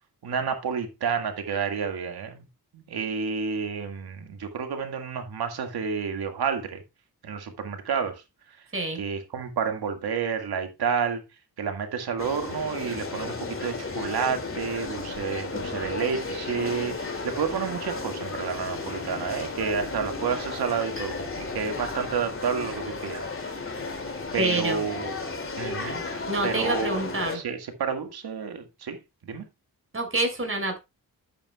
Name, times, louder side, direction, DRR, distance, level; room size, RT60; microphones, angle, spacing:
voice 1, 0.2-2.4 2.7-6.8 7.2-8.2 9.0-11.2 11.6-23.7 24.3-25.1 25.6-26.0 26.4-27.0 27.3-29.0 29.2-29.5, right 6 dB, 85° right, 2.1 m, -30 dB
sound 1, 12.2-27.4, left 3 dB, 35° left, 2.6 m, -34 dB
voice 2, 24.4-24.8 26.3-27.4 29.9-30.8, right 2 dB, 35° right, 5.8 m, -27 dB
11.0 x 8.9 x 2.3 m
cardioid pair, 90°, 37 cm